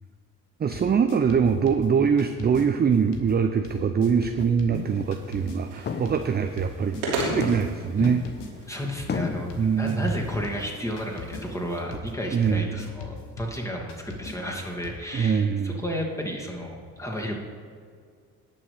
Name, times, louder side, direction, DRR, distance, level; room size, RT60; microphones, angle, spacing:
sound 1, 0.6-2.6 3.1-14.9, left 4 dB, 70° left, 1.3 m, -43 dB
voice 1, 0.6-7.0 7.3-8.2 9.6-10.1 12.3-12.9 15.1-15.7, right 6 dB, 25° right, 7 dB, 0.6 m, -23 dB
sound 2, 4.1-4.4 4.7-5.2 5.5-5.6 5.9-6.7 7.2-8.7 9.1-9.5, left 6 dB, 25° left, 0.6 m, -33 dB
sound 3, 4.8-11.8, right 2 dB, 80° right, 2.7 m, -37 dB
voice 2, 8.7-17.4, equal, 5° left, -1 dB, 2.5 m, -32 dB
18.0 x 6.1 x 3.5 m, 2.1 s
hypercardioid pair, 50°, 43 cm